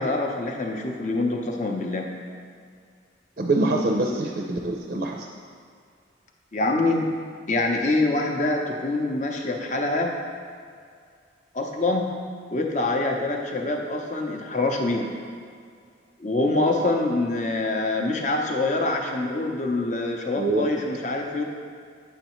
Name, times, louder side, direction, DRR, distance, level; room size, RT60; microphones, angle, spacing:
voice 1, 0.0-2.1 6.5-7.1 7.5-10.1 11.5-12.1 12.5-15.1 16.2-21.4, left 2 dB, 40° left, 1 dB, 0.7 m, -25 dB
voice 2, 3.4-5.3 20.4-20.7, right 2 dB, 45° right, 1 dB, 0.4 m, -24 dB
8.0 x 6.6 x 3.0 m, 2.2 s
head